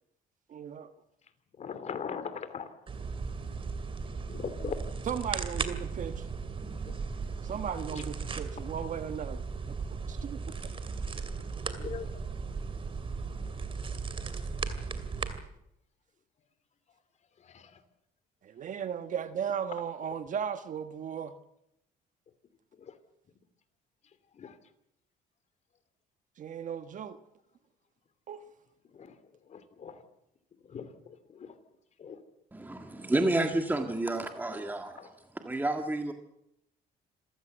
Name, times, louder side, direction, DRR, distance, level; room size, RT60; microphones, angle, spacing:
voice 1, 0.5-0.9 5.0-6.3 7.4-9.4 9.9-10.4 18.4-21.3 26.4-27.2 28.3-28.4, right 8 dB, 50° right, 1.4 m, -36 dB
voice 2, 1.6-2.7 4.3-4.8 6.9-7.0 11.7-12.1 17.5-17.6 24.4-24.5 28.9-29.1 29.5-30.0 30.7-30.9 31.4-31.5 32.0-32.2 35.0-35.1, left 7 dB, 45° left, 2.8 m, -39 dB
sound 1, 2.9-15.4, right 4 dB, 30° right, 2.5 m, -36 dB
voice 3, 32.5-35.1 35.4-36.1, right 2 dB, 10° right, 1.7 m, -30 dB
27.0 x 15.5 x 8.0 m
cardioid pair, 110°, 17 cm